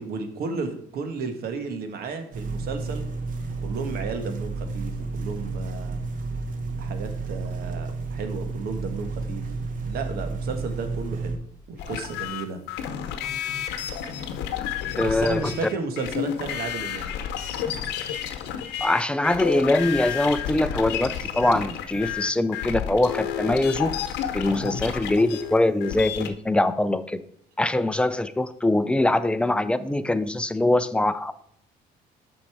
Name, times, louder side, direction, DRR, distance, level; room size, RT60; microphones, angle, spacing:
voice 1, 0.0-3.0 3.6-6.0 6.8-9.4 9.8-11.4 11.7-12.6 14.9-17.1 24.5-24.7, right 4 dB, 65° right, 7 dB, 1.4 m, -33 dB
sound 1, 2.3-11.4, right 3 dB, 50° right, 1.1 m, -31 dB
sound 2, 11.8-26.3, left 9 dB, 90° left, 0.8 m, -31 dB
voice 2, 15.0-15.4 18.8-23.9 24.3-27.2 27.6-31.3, left 2 dB, 5° left, 12 dB, 0.5 m, -23 dB
7.4 x 5.4 x 4.8 m, 0.69 s
cardioid pair, 110°, 17 cm